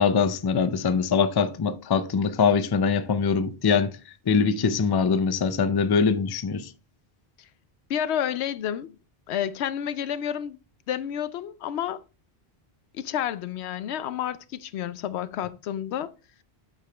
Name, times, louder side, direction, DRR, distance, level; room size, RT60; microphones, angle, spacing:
voice 1, 0.0-3.9 4.3-6.7, left 5 dB, 40° left, 0.3 m, -23 dB
voice 2, 7.9-9.0 9.3-10.6 10.9-12.0 12.9-16.1, left 10 dB, 90° left, 0.8 m, -30 dB
8.3 x 4.9 x 3.3 m
omnidirectional pair, 1.1 m